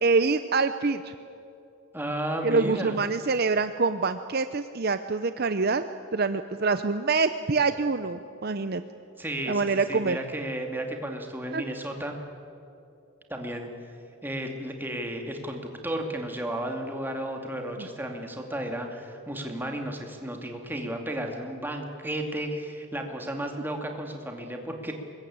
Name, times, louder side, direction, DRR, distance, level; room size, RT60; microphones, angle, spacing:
voice 1, 0.0-1.1 2.4-5.8 6.1-8.8 9.5-10.2 11.5-11.6 17.8-17.9, right 4 dB, 45° right, 10 dB, 0.6 m, -25 dB
voice 2, 1.9-3.0 9.2-12.2 13.3-13.7 14.2-25.1, right 1 dB, 10° right, 3 dB, 2.4 m, -33 dB
24.5 x 21.5 x 8.8 m, 2.7 s
head